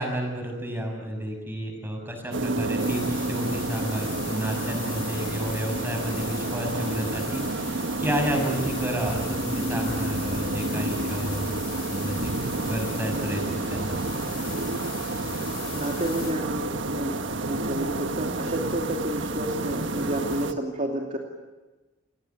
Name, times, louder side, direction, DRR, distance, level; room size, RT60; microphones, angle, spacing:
voice 1, 0.0-11.6 11.9-12.4 12.7-14.0, equal, 10° right, 3 dB, 6.4 m, -31 dB
sound 1, 2.3-20.5, right 2 dB, 70° right, 1.4 m, -30 dB
sound 2, 2.8-16.3, left 7 dB, 50° left, 5.9 m, -40 dB
voice 2, 15.7-21.2, right 1 dB, 40° right, 0 dB, 2.6 m, -30 dB
29.5 x 19.0 x 9.2 m, 1.2 s
head